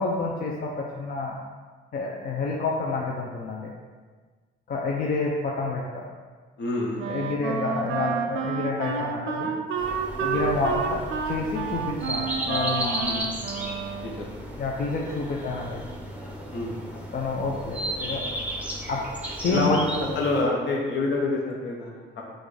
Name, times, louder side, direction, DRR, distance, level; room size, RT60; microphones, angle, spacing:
voice 1, 0.0-1.3 1.9-3.7 4.7-6.1 7.1-9.5 10.2-11.0 11.3-13.0 14.6-15.8 17.1-18.3 18.9-19.0 19.3-19.8, left 3 dB, 50° left, -2 dB, 0.6 m, -28 dB
voice 2, 6.6-7.0 10.3-10.4 13.0-13.2 14.0-14.3 16.5-16.7 19.5-22.2, left 2 dB, 70° left, -1 dB, 1.0 m, -27 dB
Wind instrument woodwind instrument, 7.0-14.4, right 5 dB, 80° right, 0.5 m, -30 dB
sound 1, 9.8-20.4, right 1 dB, 5° right, 0.9 m, -34 dB
5.9 x 2.5 x 3.3 m, 1.5 s
cardioid pair, 90°, 20 cm